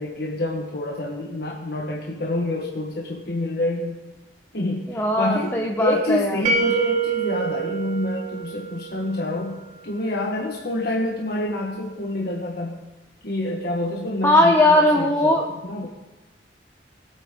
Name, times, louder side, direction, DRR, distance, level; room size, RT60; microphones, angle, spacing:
voice 1, 0.0-4.0 4.5-12.8 13.2-15.9, left 1 dB, 60° left, -1 dB, 1.4 m, -27 dB
voice 2, 4.9-6.4 14.2-15.4, left 1 dB, 15° left, 0 dB, 0.9 m, -19 dB
sound 1, 6.4-9.3, right 5 dB, 45° right, 1.6 m, -26 dB
21.5 x 8.7 x 3.8 m, 1.1 s
head